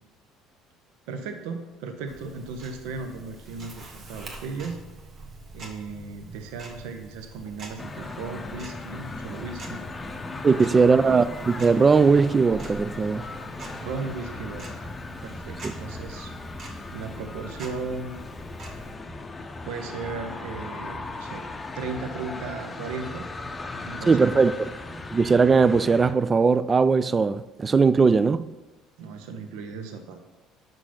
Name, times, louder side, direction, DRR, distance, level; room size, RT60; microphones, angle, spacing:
voice 1, 1.1-4.8 5.5-9.9 10.5-10.9 13.8-14.7 15.2-16.3 16.9-18.2 19.6-21.4 21.7-23.3 23.8-24.3 29.0-30.2, right 4 dB, 65° right, 0.7 m, -36 dB
Tick-tock, 2.1-18.9, right 2 dB, 45° right, 1.3 m, -45 dB
sound 1, 7.8-26.1, left 2 dB, 25° left, 0.6 m, -37 dB
voice 2, 10.4-13.3 24.1-24.5 25.1-28.5, right 5 dB, 30° right, 0.3 m, -19 dB
6.1 x 5.2 x 5.8 m
figure-of-eight pair, 55°, 0 cm